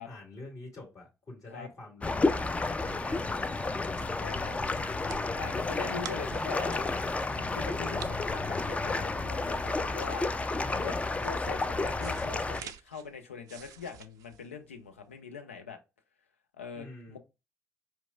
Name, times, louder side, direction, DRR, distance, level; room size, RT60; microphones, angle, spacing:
voice 1, 0.0-2.5 2.8-4.1 5.6-6.4 10.5-11.1 16.7-17.2, left 2 dB, 50° left, 1.8 m, -46 dB
sound 1, 2.0-12.6, left 3 dB, 20° left, 0.4 m, -31 dB
sound 2, 3.5-15.1, right 9 dB, 60° right, 0.4 m, -50 dB
voice 2, 4.2-4.6 5.3-6.9 7.3-10.3 10.7-15.8 16.5-17.2, left 6 dB, 80° left, 0.4 m, -42 dB
4.4 x 2.9 x 2.3 m
figure-of-eight pair, 40°, 7 cm